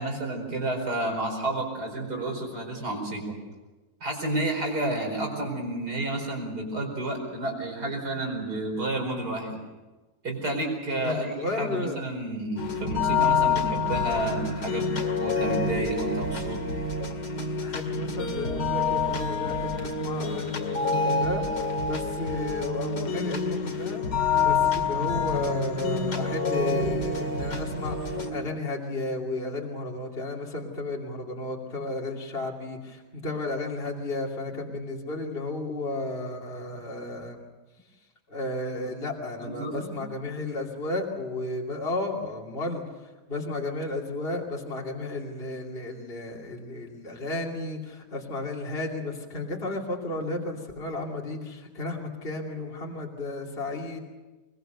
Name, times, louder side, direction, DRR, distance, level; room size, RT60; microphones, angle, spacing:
voice 1, 0.0-3.4 4.0-9.6 10.2-14.9 15.2-16.7 39.4-40.0, right 2 dB, 60° right, 2 dB, 5.4 m, -30 dB
voice 2, 11.0-12.0 17.6-24.1 24.4-37.4 38.3-42.8 43.3-54.0, left 2 dB, 30° left, -1 dB, 3.0 m, -33 dB
sound 1, 12.6-28.3, left 4 dB, 70° left, 2.9 m, -27 dB
23.0 x 22.0 x 6.8 m, 1.2 s
omnidirectional pair, 1.9 m